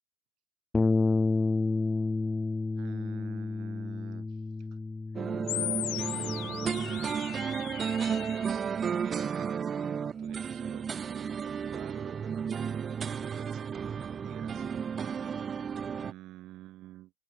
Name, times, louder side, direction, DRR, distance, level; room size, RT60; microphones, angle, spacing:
Bass guitar, 0.7-7.0, left 3 dB, 10° left, 0.9 m, -30 dB
voice 1, 2.7-4.8 5.1-5.3 5.8-14.9 15.3-15.4 16.0-17.1, right 16 dB, 45° right, 6.8 m, -51 dB
sound 1, 5.1-16.1, right 7 dB, 25° right, 1.5 m, -33 dB
sound 2, 5.5-8.5, left 34 dB, 55° left, 0.6 m, -37 dB
open air
figure-of-eight pair, 80°, 0 cm